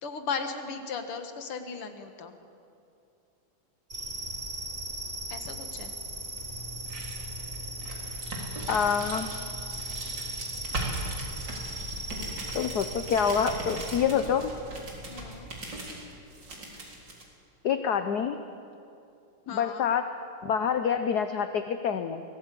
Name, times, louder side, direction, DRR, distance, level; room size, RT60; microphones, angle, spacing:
voice 1, 0.0-2.4 5.3-5.9 15.1-15.5 19.5-19.9, left 5 dB, 80° left, 7 dB, 2.5 m, -36 dB
sound 1, 3.9-14.0, right 1 dB, 25° right, 4.2 m, -38 dB
sound 2, 6.4-17.2, right 1 dB, 55° right, 4.2 m, -39 dB
voice 2, 8.7-9.3 12.5-14.5 17.6-18.4 19.5-20.1 20.4-22.2, left 7 dB, 60° left, 9 dB, 1.1 m, -27 dB
23.0 x 18.0 x 8.5 m, 2.7 s
omnidirectional pair, 2.4 m